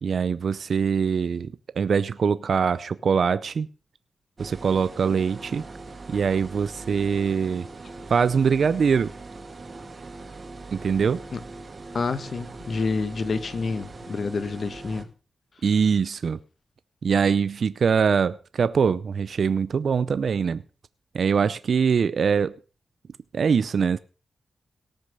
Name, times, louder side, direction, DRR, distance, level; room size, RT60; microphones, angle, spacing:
voice 1, 0.0-3.7 4.4-5.6 6.1-7.7 8.1-9.1 10.7-11.2 15.6-16.4 17.0-20.6 21.1-22.6 23.3-24.0, right 6 dB, 70° right, 0.5 m, -23 dB
sound 1, 4.4-15.0, right 3 dB, 45° right, 2.2 m, -41 dB
voice 2, 11.9-15.1, left 4 dB, 60° left, 1.4 m, -28 dB
18.0 x 6.6 x 6.7 m
cardioid pair, 70°, 0 cm